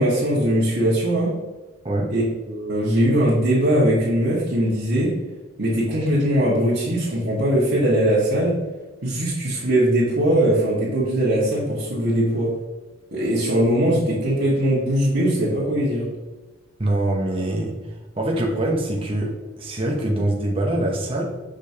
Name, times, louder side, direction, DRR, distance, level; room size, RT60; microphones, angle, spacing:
voice 1, 0.0-1.3 2.1-5.2 5.6-8.6 9.0-12.5 13.1-16.0, right 1 dB, 60° right, -10 dB, 1.6 m, -20 dB
voice 2, 16.8-17.7 18.2-21.3, right 1 dB, 25° right, -1 dB, 0.8 m, -24 dB
6.5 x 5.2 x 2.8 m, 1.2 s
head